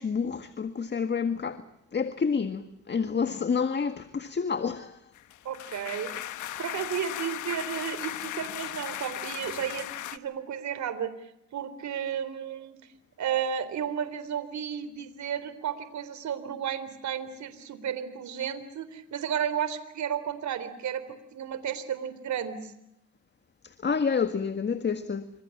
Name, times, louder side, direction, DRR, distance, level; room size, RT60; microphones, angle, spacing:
voice 1, 0.0-5.1 23.6-25.3, left 5 dB, 35° left, 1.8 m, -29 dB
sound 1, 5.2-10.2, left 13 dB, 80° left, 1.5 m, -37 dB
voice 2, 5.4-6.2 6.6-11.1 11.5-12.8 13.2-22.7, right 8 dB, 70° right, 3.8 m, -33 dB
28.0 x 26.5 x 7.2 m
cardioid pair, 90°, 30 cm